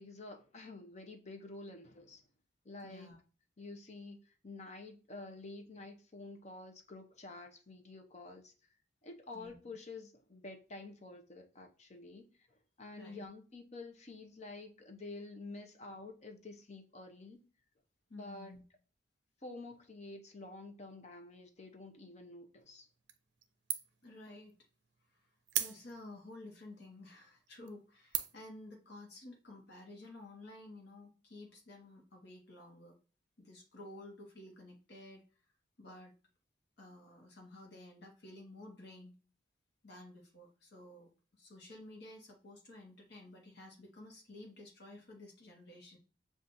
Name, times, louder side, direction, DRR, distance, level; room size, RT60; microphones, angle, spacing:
voice 1, 0.0-2.2 2.6-3.1 3.6-4.2 4.4-8.5 9.0-12.3 12.8-17.4 18.1-18.5 19.4-22.9, left 2 dB, 40° left, 0.7 m, -49 dB
voice 2, 2.8-3.2 9.3-9.6 13.0-13.3 18.1-18.6 24.0-24.5 25.6-33.0 33.4-35.2 35.8-36.1 36.8-39.1 39.8-46.0, left 2 dB, 65° left, 1.0 m, -52 dB
sound 1, 23.1-23.4 23.7-24.1 24.5-24.6 25.5-26.2 26.8-26.9 27.5-27.7 28.1-28.5, right 11 dB, 75° right, 0.5 m, -37 dB
7.0 x 2.4 x 2.6 m
head